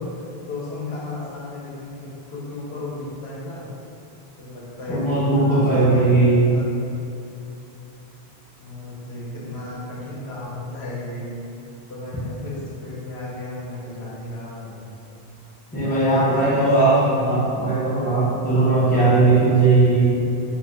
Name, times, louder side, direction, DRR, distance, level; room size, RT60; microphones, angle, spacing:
voice 1, 0.0-3.7 4.4-6.0 6.5-6.7 8.6-11.3 11.9-14.8 15.8-17.3, left 2 dB, 75° left, -6 dB, 0.9 m, -34 dB
voice 2, 4.9-6.4 15.7-20.0, right 2 dB, 10° left, -10 dB, 0.6 m, -18 dB
2.6 x 2.4 x 3.2 m, 2.6 s
omnidirectional pair, 1.1 m